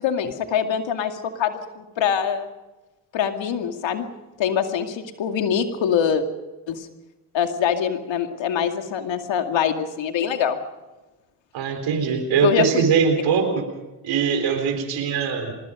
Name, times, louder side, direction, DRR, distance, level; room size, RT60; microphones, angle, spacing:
voice 1, 0.0-2.5 3.1-4.1 4.4-6.2 6.7-6.9 7.3-10.6 12.4-12.9, left 8 dB, 85° left, 6 dB, 2.4 m, -24 dB
voice 2, 11.5-13.6 14.0-15.5, right 6 dB, 90° right, 5 dB, 4.0 m, -21 dB
24.5 x 20.5 x 5.2 m, 1.1 s
supercardioid pair, 50°, 44 cm